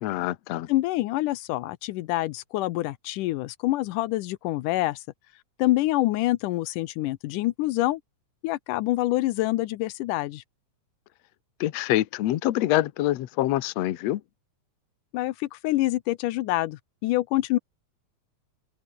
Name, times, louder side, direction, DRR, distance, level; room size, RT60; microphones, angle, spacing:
voice 1, 0.0-0.7 11.6-14.2, left 15 dB, 65° left, 2.0 m, -25 dB
voice 2, 0.7-5.0 5.6-8.0 8.4-10.4 15.1-17.6, left 17 dB, 85° left, 2.3 m, -26 dB
open air
omnidirectional pair, 3.6 m